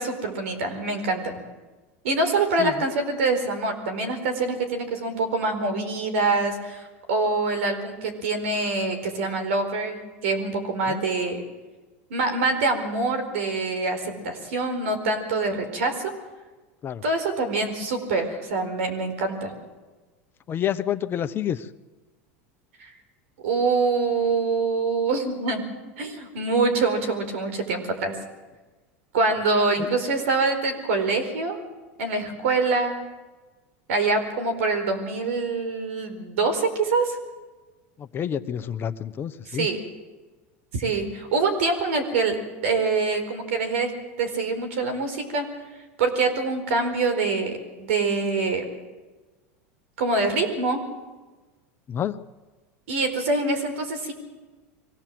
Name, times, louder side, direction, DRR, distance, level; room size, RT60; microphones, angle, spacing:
voice 1, 0.0-1.3 2.0-11.4 12.1-16.1 17.0-19.5 22.8-22.9 23.4-25.6 26.0-28.1 29.1-31.6 32.0-32.9 33.9-37.2 39.5-39.8 40.7-42.4 42.6-43.9 44.2-45.5 46.0-48.7 50.0-50.8 52.9-54.1, right 3 dB, 80° right, 7 dB, 4.6 m, -25 dB
voice 2, 20.5-21.7 29.8-29.9 38.0-39.7 51.9-52.2, left 9 dB, 35° left, 11 dB, 0.9 m, -28 dB
23.5 x 17.0 x 7.7 m, 1.2 s
supercardioid pair, 110°, 7 cm